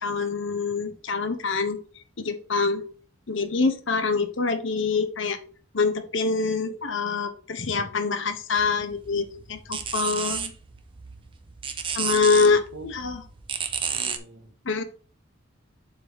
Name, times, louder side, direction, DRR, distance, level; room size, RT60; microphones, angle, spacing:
voice 1, 0.0-1.8 2.2-2.8 3.3-5.4 5.7-10.5 11.9-13.2 14.6-14.8, left 4 dB, 65° left, 8 dB, 0.9 m, -25 dB
sound 1, 8.5-14.2, right 7 dB, 25° right, 0.6 m, -32 dB
voice 2, 13.9-14.6, right 3 dB, 80° right, -1 dB, 1.5 m, -44 dB
7.5 x 3.5 x 4.6 m, 0.41 s
head